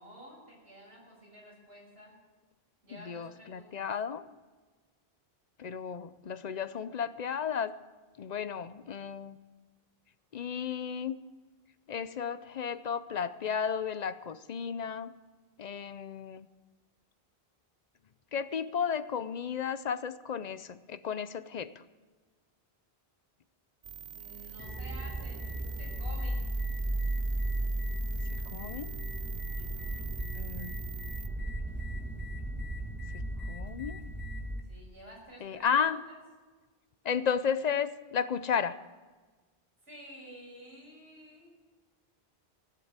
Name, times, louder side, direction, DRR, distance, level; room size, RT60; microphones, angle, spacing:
voice 1, 0.0-2.1 2.8-3.9 24.1-25.4 25.7-26.4 29.5-30.1 34.6-36.2 39.8-41.5, equal, 85° right, -4 dB, 6.6 m, -51 dB
voice 2, 2.9-4.2 5.6-7.8 8.2-9.4 10.3-11.2 11.9-15.2 15.6-16.5 18.3-21.8 28.5-28.9 30.3-30.7 33.1-34.0 35.4-36.0 37.0-38.8, left 7 dB, 50° left, 14 dB, 0.6 m, -33 dB
sound 1, 23.8-31.3, right 8 dB, 55° right, 0.7 m, -46 dB
sound 2, 24.6-34.6, right 1 dB, 10° right, 1.6 m, -35 dB
16.5 x 7.6 x 8.9 m, 1.3 s
omnidirectional pair, 1.0 m